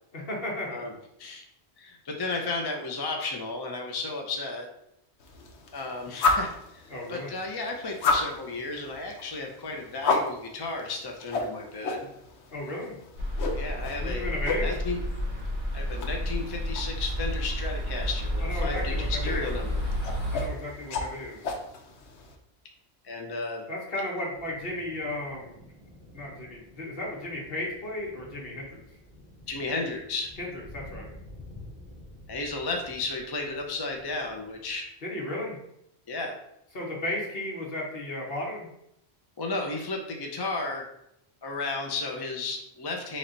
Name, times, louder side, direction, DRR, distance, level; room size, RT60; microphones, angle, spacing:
voice 1, 0.1-0.9 6.9-7.3 12.5-12.9 14.0-14.7 18.4-19.5 20.3-21.4 23.7-25.5 26.1-28.8 30.4-31.1 35.0-35.6 36.7-38.7, left 1 dB, 60° left, -2 dB, 1.4 m, -34 dB
voice 2, 1.8-4.7 5.7-12.1 13.5-14.3 14.6-15.0 15.7-19.8 23.0-23.7 29.5-30.3 32.3-34.9 36.1-36.4 39.4-40.9 41.4-43.2, left 3 dB, 30° left, 1 dB, 0.5 m, -33 dB
sound 1, 5.2-22.3, left 3 dB, 85° left, 1.0 m, -34 dB
sound 2, 13.2-20.5, equal, 70° right, 1.9 m, -31 dB
sound 3, 24.3-34.8, left 1 dB, 40° right, 2.0 m, -50 dB
4.1 x 3.2 x 3.9 m, 0.78 s
omnidirectional pair, 1.1 m